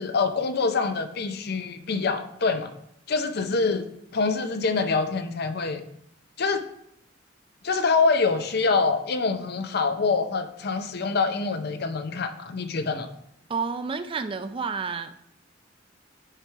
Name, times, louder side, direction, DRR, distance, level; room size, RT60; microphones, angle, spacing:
voice 1, 0.0-2.7 3.1-3.9 4.1-5.8 6.4-6.6 7.6-13.1, left 4 dB, 55° left, 8 dB, 0.6 m, -25 dB
voice 2, 13.5-15.2, right 5 dB, 30° right, 10 dB, 0.4 m, -30 dB
6.6 x 4.8 x 4.5 m, 0.74 s
head